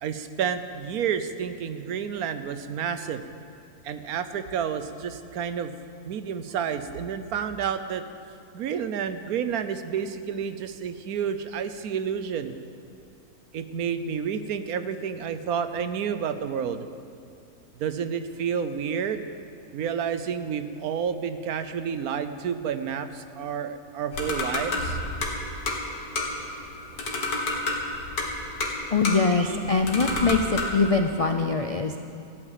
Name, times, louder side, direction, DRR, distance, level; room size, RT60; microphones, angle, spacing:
voice 1, 0.0-3.2 3.8-5.7 6.0-8.0 8.5-12.5 13.5-16.9 17.8-19.3 19.7-25.0, right 7 dB, 75° right, 11 dB, 1.2 m, -30 dB
sound 1, 24.1-30.8, left 2 dB, 80° left, 2.3 m, -30 dB
voice 2, 28.9-32.0, left 4 dB, 60° left, 5 dB, 0.3 m, -23 dB
15.0 x 8.8 x 9.0 m, 2.5 s
omnidirectional pair, 1.6 m